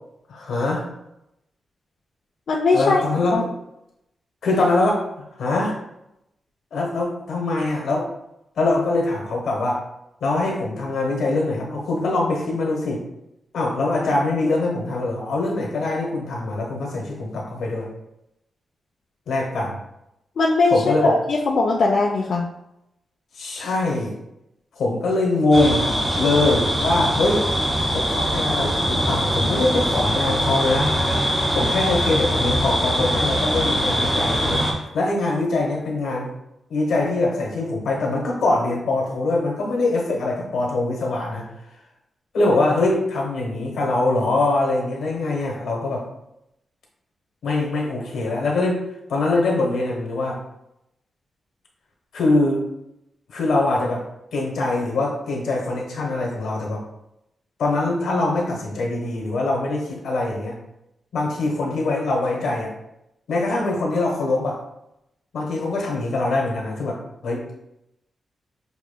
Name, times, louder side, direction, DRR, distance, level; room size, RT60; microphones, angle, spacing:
voice 1, 0.3-0.9 2.7-3.5 4.4-5.0 5.4-5.8 6.7-8.1 8.6-9.8 10.2-13.0 13.5-17.9 19.3-19.8 20.7-21.2 23.3-24.2 24.8-27.5 27.9-30.9 31.5-34.7 34.9-36.3 36.7-41.4 42.3-46.1 47.4-50.4 52.1-52.7 53.3-54.0 54.3-56.8 57.6-60.6 61.1-62.7 63.3-64.6 65.3-67.4, left 2 dB, 85° left, -1 dB, 1.1 m, -23 dB
voice 2, 2.5-3.0 3.3-3.4 20.4-22.4, left 3 dB, 65° left, -2 dB, 0.5 m, -19 dB
sound 1, 25.5-34.7, equal, 15° right, 1.2 m, -22 dB
6.7 x 3.0 x 2.2 m, 0.85 s
wide cardioid pair, 140°, 0 cm